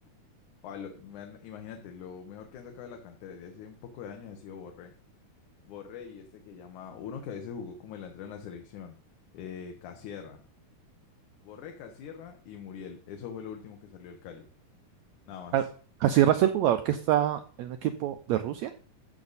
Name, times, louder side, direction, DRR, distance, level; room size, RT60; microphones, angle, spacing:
voice 1, 0.6-4.9 5.6-9.0 9.3-10.4 11.4-14.4 15.3-15.7, left 7 dB, 70° left, 4 dB, 2.5 m, -43 dB
voice 2, 16.0-18.7, right 11 dB, 85° right, 9 dB, 1.6 m, -25 dB
14.0 x 7.0 x 4.1 m, 0.43 s
omnidirectional pair, 3.8 m